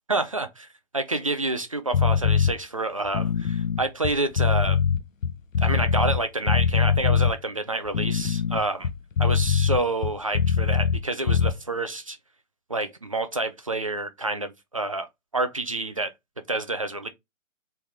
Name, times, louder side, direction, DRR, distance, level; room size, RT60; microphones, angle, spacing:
voice 1, 0.1-0.7 0.9-4.8 5.6-8.9 9.2-12.2 12.7-15.1 15.3-16.1 16.5-17.1, right 2 dB, 25° right, 0.4 m, -28 dB
sound 1, 1.9-2.5 3.1-6.2 6.5-7.3 7.9-11.0 11.3-11.5, left 7 dB, 75° left, 0.8 m, -22 dB
4.0 x 3.3 x 3.4 m
figure-of-eight pair, 140°, 40 cm